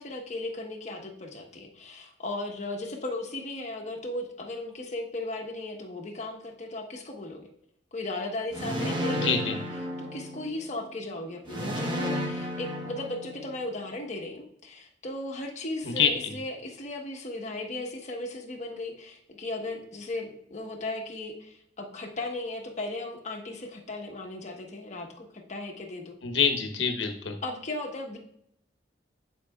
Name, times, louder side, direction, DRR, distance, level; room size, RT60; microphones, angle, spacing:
voice 1, 0.0-7.5 7.9-9.6 10.0-26.2 27.4-28.2, left 2 dB, 40° left, 1 dB, 1.2 m, -36 dB
sound 1, 8.5-10.7 11.5-13.7, equal, 25° right, 1.0 m, -32 dB
voice 2, 9.2-9.5 15.8-16.1 26.2-27.4, left 6 dB, 85° left, 5 dB, 1.0 m, -25 dB
10.0 x 4.7 x 2.3 m, 0.75 s
head